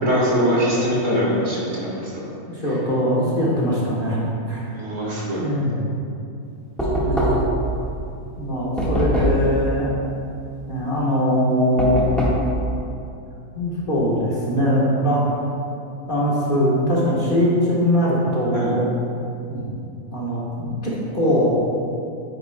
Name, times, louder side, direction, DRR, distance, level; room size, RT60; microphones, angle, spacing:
voice 1, 0.0-2.2 2.7-2.8 4.7-5.4 18.5-18.8, equal, 55° right, -6 dB, 2.2 m, -22 dB
voice 2, 2.5-4.7 5.4-5.8 7.0-7.4 8.4-9.9 10.7-12.1 13.5-15.2 16.1-18.9 19.5-19.7 20.1-21.5, equal, 35° left, -7 dB, 1.5 m, -21 dB
Knock, 6.8-7.6 8.8-9.5 11.8-12.5, equal, ahead, 1.5 m, -21 dB
9.4 x 9.4 x 2.3 m, 2.6 s
omnidirectional pair, 1.6 m